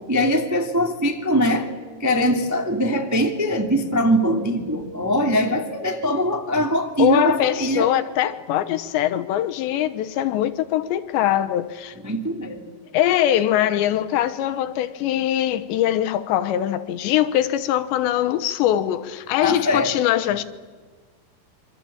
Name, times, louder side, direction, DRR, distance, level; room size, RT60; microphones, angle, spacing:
voice 1, 0.1-1.7 2.0-7.9 11.9-12.6 19.4-19.9, equal, 10° right, 0.9 m, -22 dB
voice 2, 7.0-11.9 12.9-20.4, left 11 dB, 75° left, 3.1 m, -22 dB
27.0 x 25.5 x 8.7 m
omnidirectional pair, 5.4 m